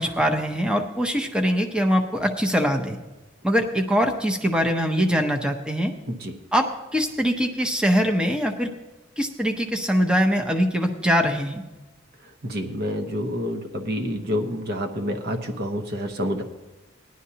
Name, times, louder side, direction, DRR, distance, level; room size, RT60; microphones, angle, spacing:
voice 1, 0.0-3.0 3.4-5.9 6.5-8.7 9.2-11.6, equal, 5° right, 3 dB, 0.7 m, -22 dB
voice 2, 12.4-16.4, equal, 55° right, 4 dB, 0.9 m, -28 dB
18.5 x 11.0 x 2.8 m, 1.1 s
head